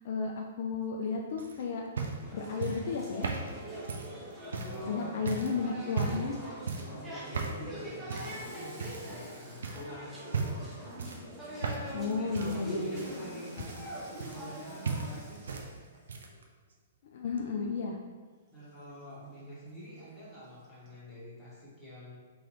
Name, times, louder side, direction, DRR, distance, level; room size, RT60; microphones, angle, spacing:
voice 1, 0.0-1.8 2.3-3.3 4.9-6.4 11.9-13.0 17.1-18.0, left 5 dB, 55° left, 1 dB, 0.3 m, -33 dB
sound 1, 1.4-4.8 5.3-5.5 5.9-6.3 6.7-7.0 7.3-7.6 8.1-8.4 8.8-9.3 9.6-9.9 10.3-10.7 11.0-12.0 12.3-14.6 14.8-15.7 15.9-16.4 17.4-17.5, right 4 dB, 65° right, 0.5 m, -36 dB
sound 2, 2.2-15.2, right 1 dB, 5° right, 0.9 m, -43 dB
voice 2, 4.5-5.5 5.7-5.9 6.7-10.6 12.1-13.9 14.2-15.7 18.5-22.2, equal, 10° left, -9 dB, 1.4 m, -47 dB
Water tap faucet / Sink (filling or washing), 8.2-11.2 12.7-16.5 18.5-21.0, right 1 dB, 25° right, 1.4 m, -56 dB
3.7 x 3.0 x 3.0 m, 1.5 s
figure-of-eight pair, 115°, 0 cm